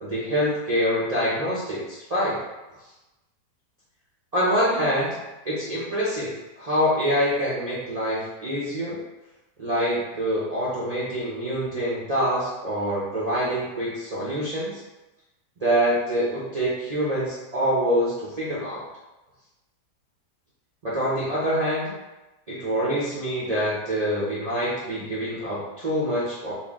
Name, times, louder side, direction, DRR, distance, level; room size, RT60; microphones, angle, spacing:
voice 1, 0.0-2.4 4.3-5.2 5.4-9.0 9.6-14.8 15.6-18.8 20.8-21.9 22.5-26.5, equal, 80° right, -8 dB, 0.3 m, -25 dB
4.4 x 2.1 x 3.5 m, 1.0 s
omnidirectional pair, 1.8 m